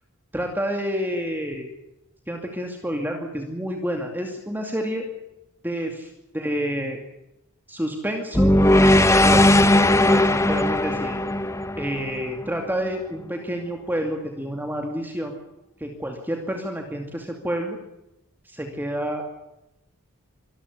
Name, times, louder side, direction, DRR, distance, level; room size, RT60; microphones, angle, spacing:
voice 1, 0.3-1.7 2.3-5.1 5.6-5.9 6.3-7.0 7.7-8.6 8.9-9.4 10.0-11.2 11.8-15.3 15.8-17.8 18.5-19.4, equal, 10° right, 3 dB, 2.4 m, -29 dB
sound 1, 8.3-12.6, left 1 dB, 15° left, 1.0 m, -18 dB
24.5 x 14.5 x 9.9 m, 0.88 s
head